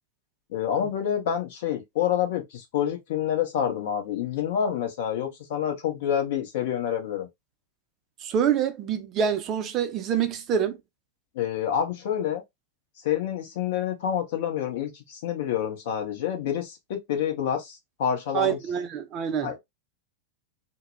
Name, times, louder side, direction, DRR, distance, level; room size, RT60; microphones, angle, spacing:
voice 1, 0.5-7.3 11.3-12.4 13.0-18.6 19.4-19.6, left 9 dB, 55° left, 0.7 m, -28 dB
voice 2, 8.2-10.8 18.3-19.6, right 8 dB, 35° right, 0.5 m, -26 dB
2.2 x 2.0 x 2.9 m
figure-of-eight pair, 90°, 0 cm